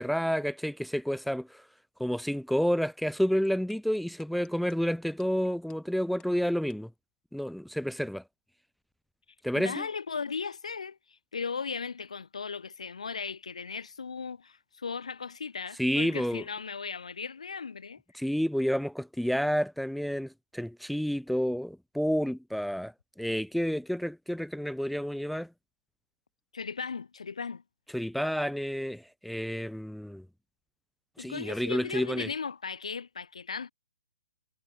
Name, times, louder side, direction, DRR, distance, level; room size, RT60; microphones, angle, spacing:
voice 1, 0.0-1.6 2.0-6.9 7.3-8.2 9.4-9.9 15.8-16.4 18.1-22.9 23.2-25.5 27.9-30.2 31.2-32.3, equal, ahead, 0.3 m, -30 dB
sound 1, 3.2-7.0, left 11 dB, 20° left, 1.3 m, -57 dB
voice 2, 9.6-18.0 26.5-27.6 31.2-33.7, left 5 dB, 70° left, 1.2 m, -37 dB
figure-of-eight pair, 125°, 4 cm